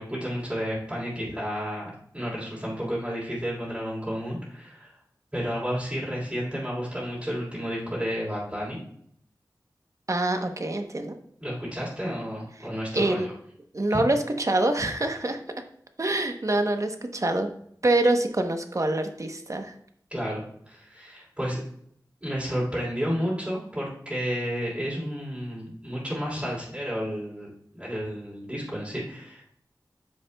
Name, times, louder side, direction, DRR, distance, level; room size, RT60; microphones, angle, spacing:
voice 1, 0.0-4.9 5.3-8.8 11.4-13.3 20.1-21.6 22.2-29.4, equal, 10° right, -9 dB, 3.2 m, -31 dB
voice 2, 10.1-11.2 12.9-13.3 13.7-15.4 16.0-17.5 17.8-19.7, right 2 dB, 45° right, 6 dB, 0.9 m, -25 dB
10.0 x 7.1 x 2.3 m, 0.67 s
wide cardioid pair, 60°, 7 cm